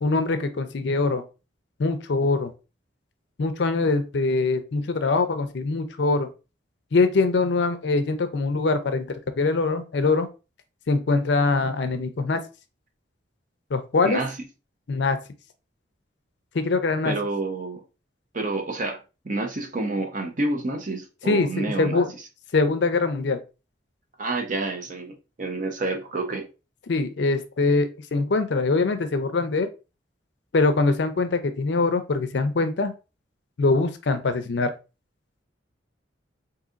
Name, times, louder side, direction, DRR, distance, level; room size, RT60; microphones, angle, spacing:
voice 1, 0.0-1.2 1.8-2.5 3.4-6.3 6.9-9.0 9.4-10.3 10.9-12.4 13.7-14.2 14.9-15.2 16.5-17.1 21.2-22.1 22.5-23.4 26.9-29.7 30.5-32.9 33.6-34.7, left 3 dB, 65° left, 0.5 m, -23 dB
voice 2, 14.0-14.4 17.0-17.8 18.3-22.0 24.2-26.5, right 2 dB, 40° right, 0.6 m, -29 dB
3.9 x 2.7 x 2.4 m
head